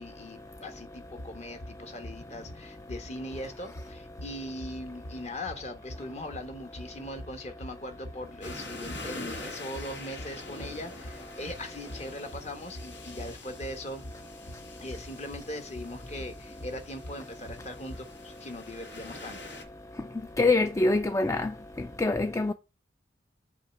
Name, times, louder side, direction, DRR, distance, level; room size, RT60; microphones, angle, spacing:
voice 1, 0.0-14.0 14.8-19.5, left 1 dB, 35° left, 1.3 m, -40 dB
sound 1, 1.0-18.1, equal, 60° left, 0.7 m, -46 dB
sound 2, 8.4-19.6, left 2 dB, 85° left, 2.2 m, -45 dB
voice 2, 20.4-21.5 21.8-22.5, left 2 dB, 15° left, 0.3 m, -25 dB
7.6 x 3.2 x 5.8 m
head